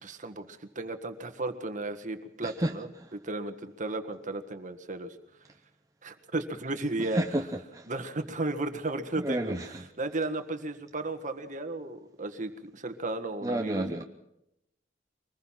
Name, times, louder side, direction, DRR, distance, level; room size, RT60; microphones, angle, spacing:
voice 1, 0.0-2.9 3.1-5.2 6.0-7.2 7.9-9.5 10.0-14.0, right 2 dB, 45° right, 8 dB, 1.7 m, -34 dB
voice 2, 2.4-2.7 7.1-7.9 9.2-9.9 13.4-14.0, right 1 dB, 20° right, 4 dB, 0.8 m, -31 dB
24.0 x 20.0 x 5.8 m, 0.84 s
head